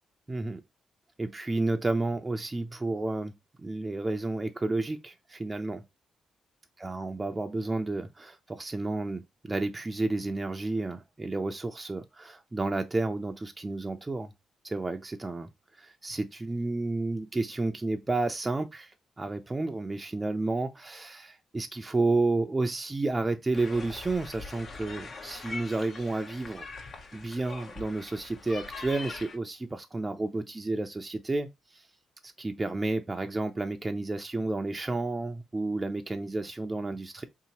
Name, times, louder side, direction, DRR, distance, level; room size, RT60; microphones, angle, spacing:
voice 1, 0.3-0.6 1.2-3.3 3.6-5.8 6.8-14.3 14.6-15.5 15.8-26.7 27.1-31.8 32.2-37.2, right 2 dB, 25° right, 0.4 m, -31 dB
sound 1, 23.5-29.4, left 3 dB, 55° left, 0.9 m, -43 dB
3.6 x 2.8 x 2.8 m
supercardioid pair, 60°, 0 cm